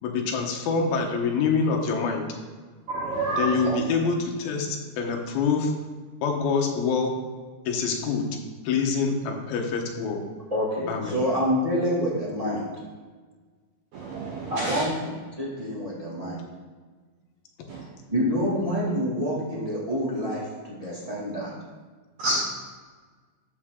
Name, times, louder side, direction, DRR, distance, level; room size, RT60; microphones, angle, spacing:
voice 1, 0.0-2.2 3.4-5.7 6.2-7.1 7.7-8.3 8.6-10.2 10.9-11.2, left 5 dB, 75° left, 2 dB, 2.9 m, -25 dB
voice 2, 2.9-3.7 13.9-14.9 17.7-17.8 22.2-22.4, right 2 dB, 75° right, -2 dB, 1.7 m, -28 dB
voice 3, 10.5-12.7 14.5-16.4 18.1-21.5, equal, 20° right, -7 dB, 1.1 m, -27 dB
13.0 x 5.6 x 3.7 m, 1.4 s
omnidirectional pair, 4.4 m